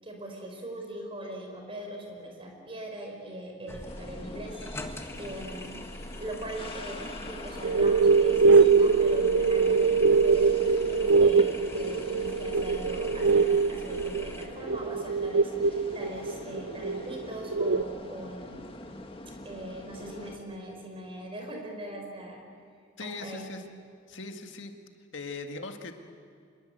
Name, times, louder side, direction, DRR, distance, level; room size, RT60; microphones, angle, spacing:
voice 1, 0.0-5.8 6.2-18.6 19.4-22.4 23.0-23.5, right 1 dB, 30° right, 1 dB, 5.3 m, -41 dB
sound 1, 3.7-14.5, left 1 dB, 15° left, 1.6 m, -43 dB
sound 2, 3.8-20.4, left 1 dB, 30° left, 1.8 m, -44 dB
sound 3, 7.6-17.8, right 4 dB, 70° right, 0.6 m, -23 dB
voice 2, 23.0-23.6 24.1-24.8 25.1-25.9, left 3 dB, 85° left, 5 dB, 2.0 m, -39 dB
25.5 x 22.5 x 8.0 m, 2.3 s
head